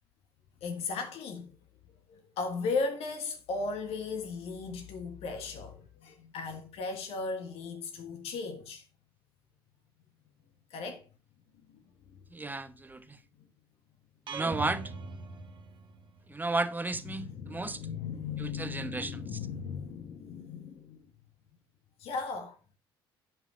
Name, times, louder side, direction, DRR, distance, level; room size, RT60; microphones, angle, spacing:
voice 1, 0.6-1.5 2.1-8.8 10.7-11.0 12.1-12.2 17.1-21.0 22.0-22.6, left 4 dB, 55° left, 1.5 m, -36 dB
voice 2, 12.3-13.2 14.3-14.8 16.3-17.8 18.4-19.4, right 3 dB, 15° right, 1.1 m, -33 dB
sound 1, 14.3-16.3, right 4 dB, 40° right, 1.4 m, -40 dB
10.5 x 5.3 x 4.8 m
figure-of-eight pair, 55°, 13 cm